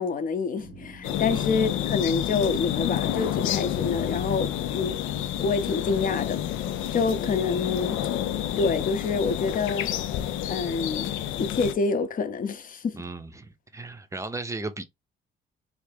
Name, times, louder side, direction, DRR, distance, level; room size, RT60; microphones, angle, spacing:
voice 1, 0.0-5.0 5.4-6.4 6.9-8.0 8.6-9.9 10.4-13.0, left 4 dB, 45° left, 0.6 m, -27 dB
sound 1, 0.6-5.8, right 1 dB, 85° right, 0.8 m, -50 dB
sound 2, 1.0-11.7, left 11 dB, 85° left, 0.4 m, -29 dB
voice 2, 12.9-14.8, right 3 dB, 15° right, 0.6 m, -36 dB
3.3 x 2.4 x 3.3 m
cardioid pair, 90°, 20 cm